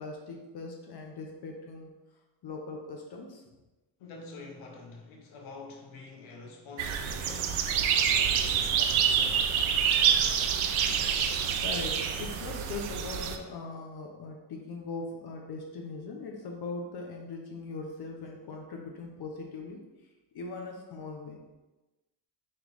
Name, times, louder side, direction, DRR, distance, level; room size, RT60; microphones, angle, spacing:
voice 1, 0.0-1.9 2.4-3.4 11.6-19.8 20.3-21.4, left 3 dB, 50° left, 0.7 m, -40 dB
voice 2, 4.0-7.9 8.2-9.6, left 3 dB, 80° left, 1.0 m, -47 dB
sound 1, 6.8-13.4, right 8 dB, 80° right, 0.5 m, -27 dB
3.2 x 3.0 x 3.8 m
cardioid pair, 95°, 48 cm